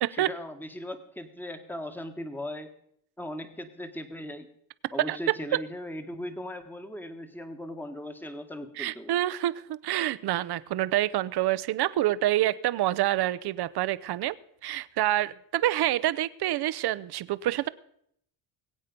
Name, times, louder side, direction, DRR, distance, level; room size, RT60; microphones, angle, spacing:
voice 1, 0.1-2.7 3.2-4.5 4.9-9.1, left 1 dB, 5° left, 8 dB, 1.3 m, -38 dB
voice 2, 5.0-5.4 8.8-14.4 14.6-17.7, right 14 dB, 50° right, 17 dB, 0.7 m, -27 dB
21.0 x 8.4 x 5.2 m, 0.70 s
cardioid pair, 110°, 49 cm